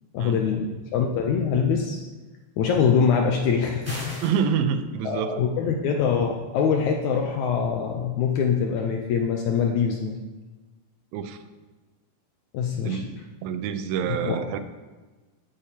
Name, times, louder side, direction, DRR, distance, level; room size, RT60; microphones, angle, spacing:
voice 1, 0.1-0.7 0.9-2.0 2.6-4.2 5.0-10.2 12.5-13.0 14.2-14.4, left 6 dB, 80° left, 2 dB, 1.7 m, -24 dB
sound 1, 3.8-4.4, equal, 5° left, 2.3 m, -36 dB
voice 2, 4.2-5.4 11.1-11.4 12.8-13.1 13.4-14.6, right 7 dB, 90° right, 9 dB, 2.5 m, -27 dB
16.5 x 8.6 x 2.9 m, 1.3 s
omnidirectional pair, 4.1 m